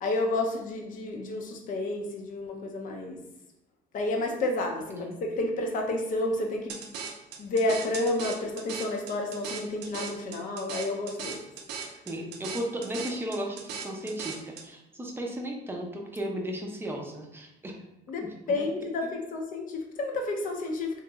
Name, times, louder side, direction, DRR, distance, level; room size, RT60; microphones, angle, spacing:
voice 1, 0.0-3.2 3.9-6.8 7.4-11.4 18.1-21.0, left 2 dB, 55° left, 2 dB, 0.6 m, -30 dB
voice 2, 4.9-5.2 12.1-17.8 18.2-18.7, equal, 15° right, 1 dB, 0.5 m, -35 dB
sound 1, 6.7-14.7, right 6 dB, 80° right, 0.4 m, -39 dB
2.9 x 2.8 x 2.3 m, 0.87 s
cardioid pair, 110°, 17 cm